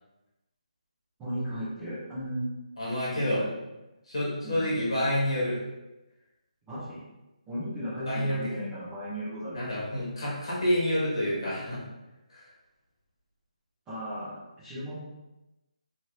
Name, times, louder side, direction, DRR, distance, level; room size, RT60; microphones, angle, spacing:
voice 1, 1.2-2.6 3.1-3.5 4.4-4.7 6.7-7.0 7.5-9.6 13.9-15.0, equal, 5° right, -13 dB, 0.6 m, -35 dB
voice 2, 2.8-3.4 4.1-5.6 8.1-8.4 9.5-11.8 12.3-12.5, equal, 50° left, -7 dB, 1.3 m, -28 dB
2.9 x 2.6 x 3.0 m, 1.0 s
hypercardioid pair, 180°, 4 cm